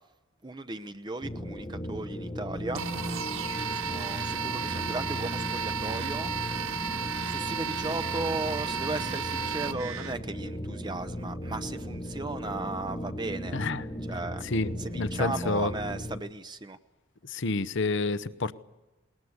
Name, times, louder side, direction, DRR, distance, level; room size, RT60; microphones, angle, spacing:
voice 1, 0.4-2.8 3.7-6.3 7.2-13.6 14.1-14.4 14.8-16.8, right 2 dB, 20° right, 0.8 m, -36 dB
sound 1, 1.2-16.2, equal, 20° left, 1.4 m, -37 dB
sound 2, 2.7-10.1, right 6 dB, 75° right, 1.2 m, -33 dB
voice 2, 13.5-13.8 14.4-15.7 17.2-18.5, left 3 dB, 55° left, 0.8 m, -29 dB
20.5 x 20.0 x 9.5 m
head